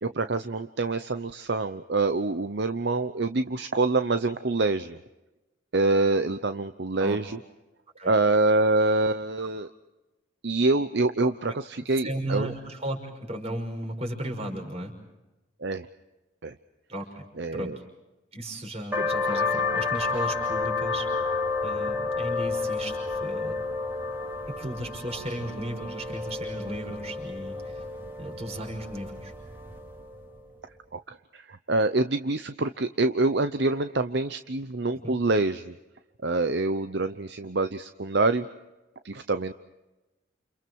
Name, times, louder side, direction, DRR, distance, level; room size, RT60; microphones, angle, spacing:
voice 1, 0.0-5.0 5.7-7.4 8.0-9.7 10.4-12.5 15.6-15.9 16.4-16.5 17.4-17.8 30.9-35.7 36.2-38.5 39.0-39.5, right 2 dB, 60° right, 10 dB, 0.8 m, -26 dB
voice 2, 12.0-14.9 16.9-17.7 18.3-21.1 21.6-23.6 24.5-27.6 28.2-29.3 35.0-35.2, right 1 dB, 30° right, 3 dB, 5.6 m, -35 dB
sound 1, 18.9-30.2, left 4 dB, 10° right, 2.8 m, -30 dB
30.0 x 29.0 x 4.7 m, 1.0 s
head